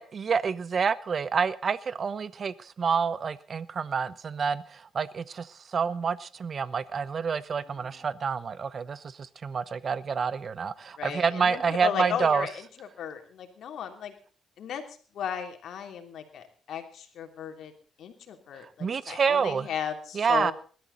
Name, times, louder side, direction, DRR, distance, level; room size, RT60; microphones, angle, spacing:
voice 1, 0.0-12.5 18.8-19.7 20.1-20.5, right 6 dB, 45° right, 18 dB, 0.9 m, -28 dB
voice 2, 7.7-8.0 11.0-14.1 14.6-14.8 15.1-17.7 18.0-20.5, left 8 dB, 70° left, 6 dB, 3.1 m, -35 dB
20.5 x 13.0 x 4.0 m, 0.39 s
cardioid pair, 110°, 0 cm